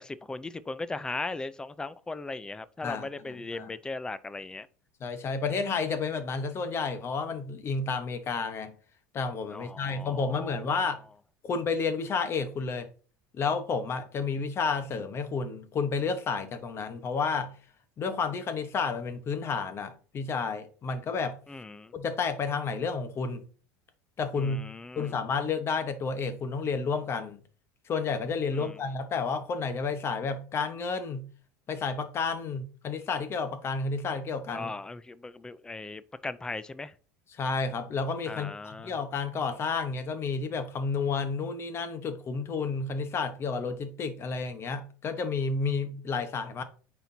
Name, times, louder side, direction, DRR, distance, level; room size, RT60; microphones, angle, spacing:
voice 1, 0.0-4.7 9.5-10.6 21.5-21.9 24.4-25.2 28.5-28.8 34.5-36.9 38.3-38.9, left 3 dB, 10° left, 0.4 m, -38 dB
voice 2, 2.8-3.7 5.0-8.7 9.1-11.0 11.4-12.9 13.3-17.5 18.0-21.4 21.9-23.4 24.2-24.6 25.0-27.4 27.9-31.3 31.7-34.7 37.3-46.6, left 4 dB, 30° left, 1.0 m, -31 dB
9.1 x 4.4 x 2.7 m
supercardioid pair, 125°, 8 cm